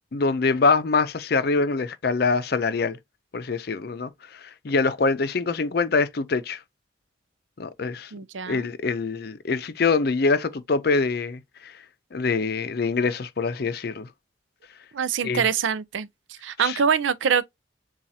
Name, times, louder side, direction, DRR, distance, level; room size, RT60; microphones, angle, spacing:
voice 1, 0.1-3.0 3.3-4.1 4.6-6.6 7.6-8.1 8.5-11.7 12.1-14.1 15.2-15.4 16.6-16.8, left 4 dB, 55° left, 0.5 m, -24 dB
voice 2, 8.1-8.7 14.9-17.5, right 7 dB, 80° right, 0.5 m, -25 dB
7.2 x 2.4 x 2.8 m
head